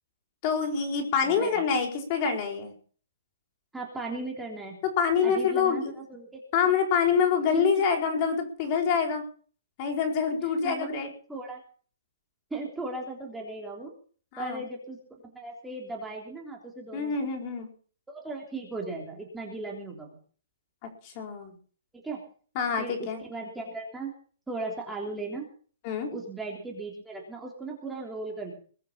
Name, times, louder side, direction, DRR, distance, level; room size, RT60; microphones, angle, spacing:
voice 1, 0.4-2.7 5.0-5.9 6.5-9.2 9.8-11.1 14.3-14.6 16.9-17.7 21.0-21.5 22.5-23.2 25.8-26.1, left 6 dB, 30° left, 4 dB, 4.5 m, -26 dB
voice 2, 1.2-1.6 3.7-4.8 5.2-6.4 7.5-7.8 10.6-11.0 11.3-11.6 12.5-13.9 14.4-15.0 15.2-17.3 18.1-20.2 21.9-22.2 22.8-24.1 24.5-25.5 26.1-28.5, right 3 dB, 5° right, -1 dB, 3.5 m, -37 dB
21.5 x 7.6 x 7.3 m, 0.43 s
hypercardioid pair, 165°, 0 cm